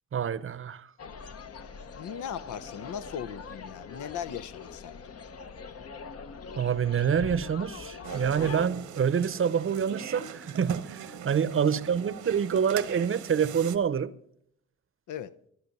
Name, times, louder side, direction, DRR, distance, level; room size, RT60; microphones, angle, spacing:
voice 1, 0.1-0.9 6.6-14.1, right 7 dB, 45° right, 0.7 m, -27 dB
sound 1, 1.0-8.7, left 5 dB, 55° left, 0.9 m, -43 dB
voice 2, 2.0-5.0 11.5-11.7 15.1-15.3, left 8 dB, 90° left, 0.6 m, -38 dB
sound 2, 8.0-13.8, right 8 dB, 90° right, 1.1 m, -41 dB
13.0 x 11.5 x 5.4 m
cardioid pair, 70°, 29 cm